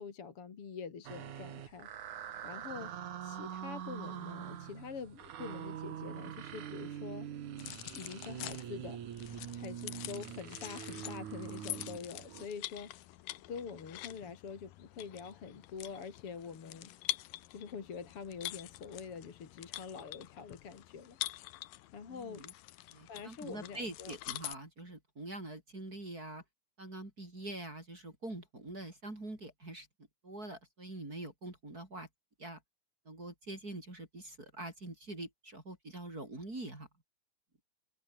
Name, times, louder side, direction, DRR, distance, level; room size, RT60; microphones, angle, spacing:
voice 1, 0.0-1.9 2.4-2.9 3.2-7.3 7.9-9.0 9.5-12.9 13.5-16.9 17.5-21.2 21.9-22.5 23.1-24.2, left 6 dB, 45° left, 3.2 m, -45 dB
sound 1, 1.1-12.5, right 10 dB, 65° right, 3.1 m, -44 dB
sound 2, 7.6-24.6, left 16 dB, 85° left, 2.6 m, -45 dB
voice 2, 22.1-22.5 22.9-26.4 26.8-29.9 30.2-32.1 32.4-32.6 33.1-36.9, right 2 dB, 25° right, 5.4 m, -44 dB
omnidirectional pair, 3.9 m